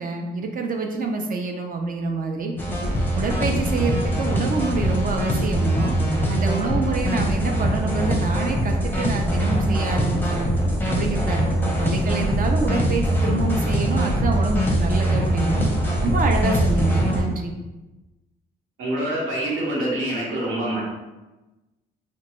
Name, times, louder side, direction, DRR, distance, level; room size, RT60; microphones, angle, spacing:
voice 1, 0.0-2.5 3.1-5.9 6.3-10.5 10.9-15.6 16.0-17.5, right 4 dB, 45° right, 3 dB, 0.4 m, -27 dB
sound 1, 2.6-17.2, equal, 10° left, 0.6 m, -22 dB
voice 2, 18.8-20.8, right 1 dB, 85° right, -4 dB, 1.0 m, -25 dB
2.9 x 2.2 x 3.0 m, 1.1 s
cardioid pair, 90°, 20 cm